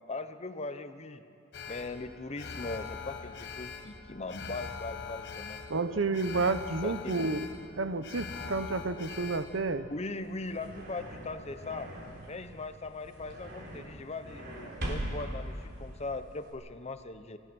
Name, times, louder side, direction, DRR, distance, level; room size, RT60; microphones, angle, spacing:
voice 1, 0.1-1.2 1.7-5.6 5.9-6.0 6.3-6.4 6.8-7.2 9.0-9.1 9.9-11.9 12.3-17.4, left 3 dB, 35° left, 10 dB, 0.9 m, -40 dB
Alarm, 1.5-11.8 12.1-12.2, left 5 dB, 60° left, 1.2 m, -43 dB
voice 2, 5.7-7.5 7.8-9.9, right 3 dB, 75° right, 12 dB, 0.9 m, -30 dB
sound 1, 10.1-16.5, right 1 dB, 60° right, 4.3 m, -41 dB
28.0 x 17.0 x 6.2 m, 2.8 s
head